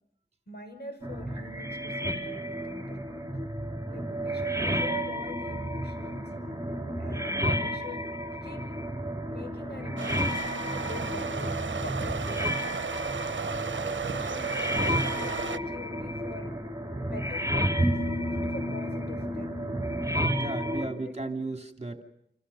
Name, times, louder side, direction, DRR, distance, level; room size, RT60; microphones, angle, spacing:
voice 1, 0.5-3.1 3.9-6.3 7.0-8.1 8.4-8.7 9.3-10.4 10.7-12.5 13.7-16.5 17.0-18.0 18.3-19.6 20.7-21.4, left 1 dB, 60° left, 6 dB, 6.6 m, -45 dB
sound 1, 1.0-20.9, equal, 15° right, 4.3 m, -31 dB
sound 2, 10.0-15.6, right 5 dB, 80° right, 0.9 m, -34 dB
voice 2, 20.4-22.0, right 2 dB, 35° right, 4 dB, 2.8 m, -35 dB
29.0 x 27.0 x 5.6 m, 0.75 s
wide cardioid pair, 70°, 19 cm